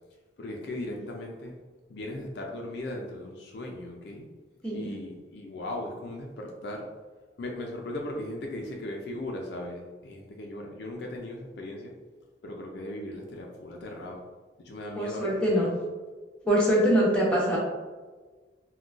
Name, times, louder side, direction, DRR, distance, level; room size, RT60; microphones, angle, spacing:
voice 1, 0.4-1.6 1.9-4.3 4.7-6.9 7.4-11.9 12.4-14.2 14.6-15.7, left 1 dB, 60° left, 0 dB, 0.4 m, -38 dB
voice 2, 15.0-15.7 16.4-17.6, equal, 5° left, -6 dB, 0.7 m, -23 dB
3.7 x 2.2 x 2.4 m, 1.4 s
head